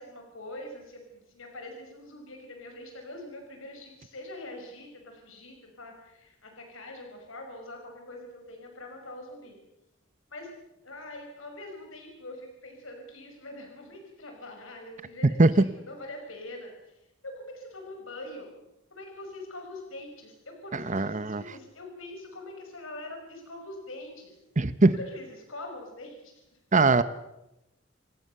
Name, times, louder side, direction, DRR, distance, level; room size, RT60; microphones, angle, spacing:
voice 1, 0.0-9.6 10.3-10.5 10.8-18.5 18.9-24.3 24.9-26.4, left 1 dB, 70° left, 3 dB, 5.6 m, -43 dB
voice 2, 20.9-21.4 24.6-24.9 26.7-27.0, right 3 dB, 40° right, 13 dB, 0.9 m, -20 dB
27.5 x 19.0 x 6.8 m, 0.89 s
head